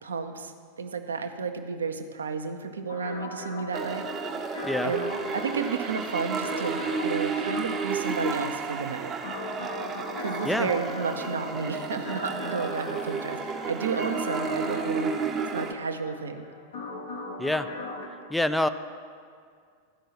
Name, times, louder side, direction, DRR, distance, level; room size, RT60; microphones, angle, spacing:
voice 1, 0.0-4.1 4.8-9.1 10.2-15.2 15.5-16.5, right 5 dB, 70° right, 7 dB, 0.6 m, -32 dB
sound 1, 2.9-18.1, left 2 dB, 65° left, 1.1 m, -39 dB
sound 2, 3.7-15.7, right 5 dB, 25° right, 0.7 m, -32 dB
voice 2, 18.3-18.7, left 1 dB, 5° left, 11 dB, 0.3 m, -26 dB
13.5 x 5.4 x 5.8 m, 2.2 s
figure-of-eight pair, 90°, 0 cm